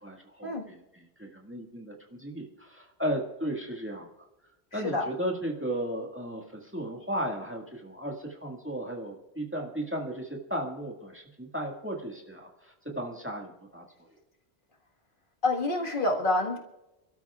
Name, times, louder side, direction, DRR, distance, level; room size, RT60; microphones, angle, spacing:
voice 1, 0.0-4.1 4.7-14.1, right 1 dB, 10° right, 0 dB, 1.8 m, -35 dB
voice 2, 15.4-16.6, left 2 dB, 55° left, 0 dB, 1.8 m, -27 dB
29.0 x 13.0 x 2.4 m, 0.95 s
omnidirectional pair, 1.1 m